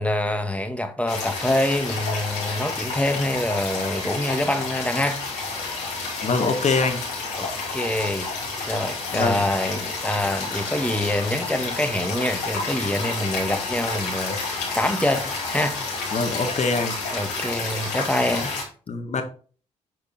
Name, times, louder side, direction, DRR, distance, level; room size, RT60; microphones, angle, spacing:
voice 1, 0.0-5.2 7.4-8.3 8.7-15.8 17.1-18.5, left 1 dB, 10° left, 1.8 m, -25 dB
sound 1, 1.1-18.6, left 3 dB, 90° left, 2.7 m, -30 dB
voice 2, 6.2-7.0 9.1-9.4 16.1-17.0 18.9-19.2, left 4 dB, 50° left, 1.9 m, -23 dB
11.0 x 4.4 x 4.4 m
hypercardioid pair, 50°, 15 cm